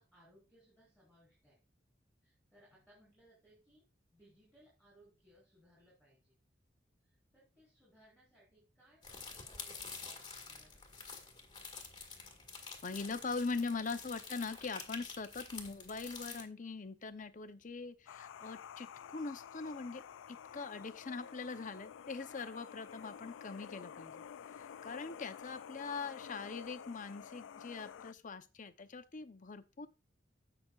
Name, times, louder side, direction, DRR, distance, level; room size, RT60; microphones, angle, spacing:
voice 1, 0.0-1.6 2.2-3.8 4.1-6.3 7.0-11.1, right 1 dB, 5° right, 4.4 m, -66 dB
sound 1, 9.0-16.4, left 5 dB, 25° left, 1.7 m, -48 dB
voice 2, 12.8-24.2 24.5-29.9, left 4 dB, 45° left, 0.7 m, -42 dB
sound 2, 18.1-28.1, left 8 dB, 90° left, 0.3 m, -50 dB
15.5 x 5.9 x 2.4 m
head